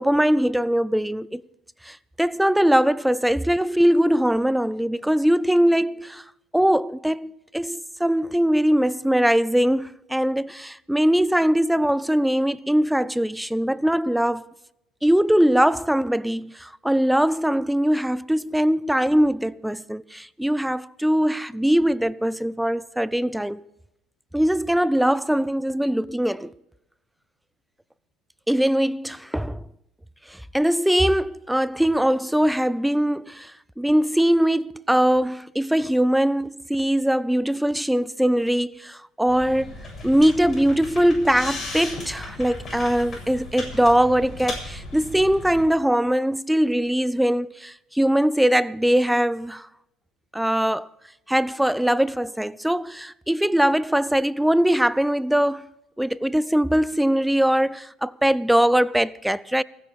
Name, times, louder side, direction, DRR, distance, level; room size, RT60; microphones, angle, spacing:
voice 1, 0.0-1.4 1.8-6.2 6.5-14.4 15.0-23.6 24.3-26.5 28.5-29.6 30.3-39.7 40.0-49.7 50.3-50.9 51.3-55.6 56.0-59.6, equal, 5° right, 0.5 m, -21 dB
sound 1, 39.3-45.7, left 2 dB, 35° left, 7.7 m, -36 dB
29.0 x 9.9 x 3.6 m
hypercardioid pair, 65°, 0 cm